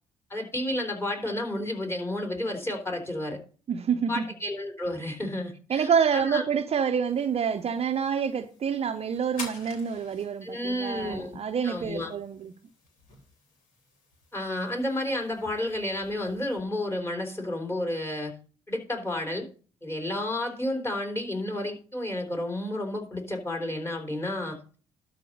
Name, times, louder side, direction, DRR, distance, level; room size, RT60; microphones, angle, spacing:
voice 1, 0.3-3.4 4.1-6.4 10.4-11.4 11.6-12.1 14.3-18.3 18.7-19.5 19.8-24.8, left 1 dB, 15° left, 3.5 m, -31 dB
voice 2, 3.7-4.3 5.7-12.5, right 7 dB, 45° right, 0.7 m, -27 dB
sound 1, 7.1-16.6, left 3 dB, 70° left, 3.3 m, -49 dB
12.0 x 4.1 x 6.5 m
hypercardioid pair, 50°, 14 cm